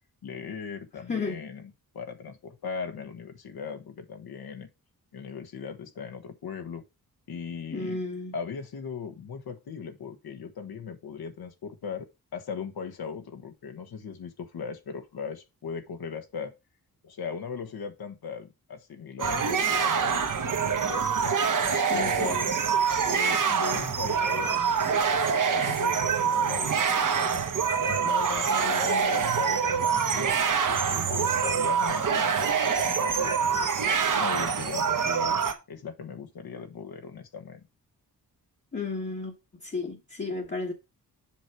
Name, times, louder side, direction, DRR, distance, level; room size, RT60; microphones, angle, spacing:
voice 1, 0.2-4.7 5.1-6.8 7.3-8.0 8.3-12.1 12.3-16.5 17.0-22.4 23.0-27.5 27.8-33.7 34.1-35.4 35.7-37.6, left 6 dB, 70° left, 1.4 m, -38 dB
voice 2, 1.1-1.4 7.7-8.3 21.9-22.6 28.5-29.1 38.7-39.3 39.6-40.7, left 3 dB, 30° left, 1.3 m, -33 dB
sound 1, 19.2-35.5, right 6 dB, 55° right, 1.2 m, -25 dB
7.5 x 5.0 x 4.7 m
cardioid pair, 95°, 38 cm